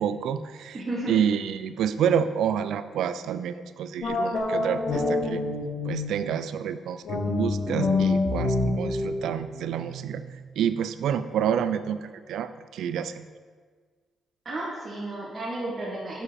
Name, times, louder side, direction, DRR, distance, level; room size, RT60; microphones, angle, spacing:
voice 1, 0.0-0.8 1.1-5.4 5.9-10.2 10.6-13.3, right 8 dB, 85° right, 12 dB, 0.3 m, -28 dB
voice 2, 0.7-1.3 14.4-16.2, right 1 dB, 30° right, -6 dB, 1.1 m, -33 dB
sound 1, 4.0-6.3 7.0-10.4, left 3 dB, 55° left, 1.0 m, -27 dB
6.6 x 4.9 x 4.2 m, 1.6 s
cardioid pair, 130°, 0 cm